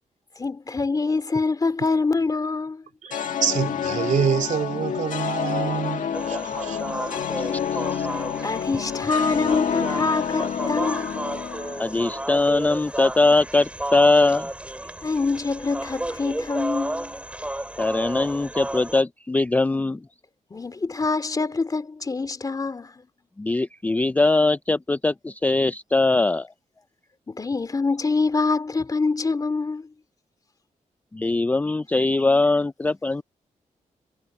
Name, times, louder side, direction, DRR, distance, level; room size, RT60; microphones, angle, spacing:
voice 1, 0.4-2.9 7.2-7.3 8.1-11.2 15.0-17.2 20.5-22.9 27.3-29.9, left 3 dB, 30° left, 2.8 m, -25 dB
voice 2, 3.0-6.8, right 7 dB, 75° right, 2.9 m, -26 dB
sound 1, 3.1-12.4, left 8 dB, 85° left, 1.8 m, -28 dB
sound 2, 6.1-19.0, right 1 dB, 10° right, 3.5 m, -33 dB
voice 3, 11.8-14.5 17.8-20.0 23.4-26.5 31.1-33.2, left 2 dB, 10° left, 0.3 m, -21 dB
wide cardioid pair, 130°, 13 cm